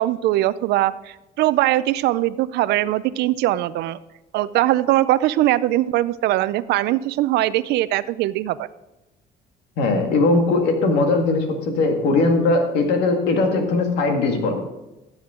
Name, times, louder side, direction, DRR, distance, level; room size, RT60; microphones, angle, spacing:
voice 1, 0.0-4.0 4.3-8.7, right 15 dB, 80° right, 16 dB, 0.5 m, -21 dB
voice 2, 9.8-14.6, left 3 dB, 90° left, 4 dB, 2.0 m, -19 dB
15.0 x 7.2 x 3.8 m, 0.99 s
cardioid pair, 110°, 17 cm